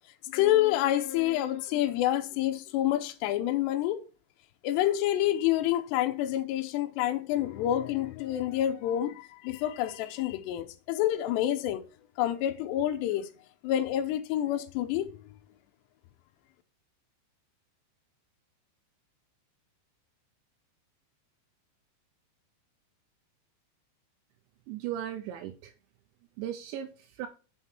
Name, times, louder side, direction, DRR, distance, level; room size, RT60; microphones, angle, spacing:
voice 1, 0.3-4.0 4.6-11.8 12.2-13.3 13.6-15.4, left 12 dB, 80° left, 2.5 m, -28 dB
voice 2, 24.7-25.7 26.4-27.3, right 11 dB, 85° right, 2.8 m, -37 dB
7.3 x 5.7 x 4.4 m
omnidirectional pair, 5.6 m